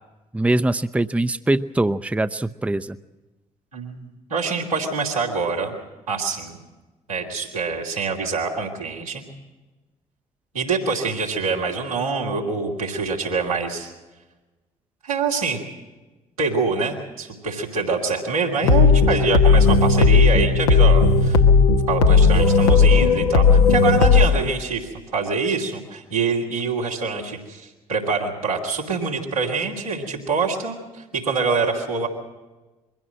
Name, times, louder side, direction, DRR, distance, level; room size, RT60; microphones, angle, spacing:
voice 1, 0.3-3.0, right 2 dB, 5° right, 12 dB, 0.6 m, -22 dB
voice 2, 3.7-5.8 6.1-6.6 7.1-9.2 10.5-13.9 15.0-15.6 16.4-21.4 21.9-32.1, right 4 dB, 90° right, -4 dB, 2.7 m, -25 dB
sound 1, 18.6-24.3, left 4 dB, 80° left, 1.0 m, -15 dB
22.5 x 16.0 x 7.7 m, 1.2 s
figure-of-eight pair, 45°, 18 cm